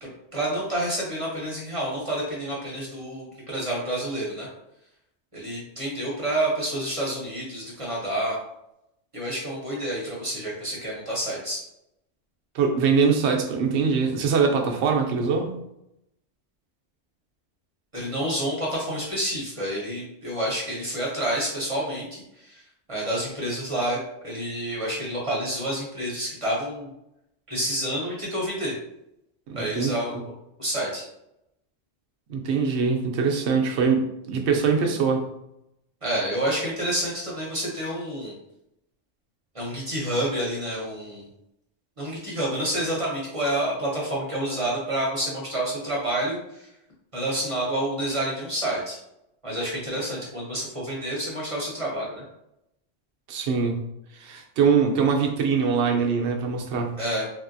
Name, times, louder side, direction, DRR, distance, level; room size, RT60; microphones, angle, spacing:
voice 1, 0.0-4.5 5.3-8.4 9.1-11.6 17.9-24.0 24.2-26.9 27.5-28.7 29.5-30.2 30.6-31.0 36.0-38.3 39.5-41.3 42.0-46.7 47.1-49.0 49.4-52.2 57.0-57.3, right 1 dB, 30° right, -4 dB, 0.7 m, -29 dB
voice 2, 12.5-15.5 29.5-29.9 32.3-35.2 53.3-53.8 54.1-57.0, right 5 dB, 70° right, 3 dB, 0.8 m, -23 dB
3.3 x 2.7 x 2.5 m, 0.81 s
omnidirectional pair, 1.3 m